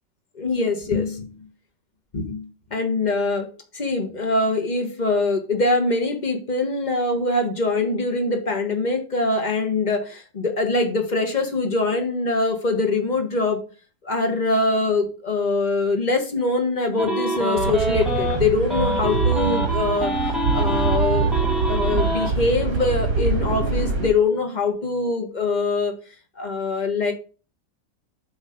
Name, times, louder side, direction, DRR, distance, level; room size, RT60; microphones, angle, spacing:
voice 1, 0.3-1.3 2.1-3.5 3.7-13.6 14.0-20.1 20.5-21.3 21.7-25.9 26.4-27.1, left 3 dB, 30° left, 4 dB, 1.3 m, -23 dB
sound 1, 17.0-18.4 18.7-22.3, equal, ahead, 1.7 m, -25 dB
sound 2, 17.5-24.1, right 4 dB, 65° right, 2.0 m, -24 dB
8.1 x 3.2 x 5.1 m, 0.36 s
omnidirectional pair, 1.6 m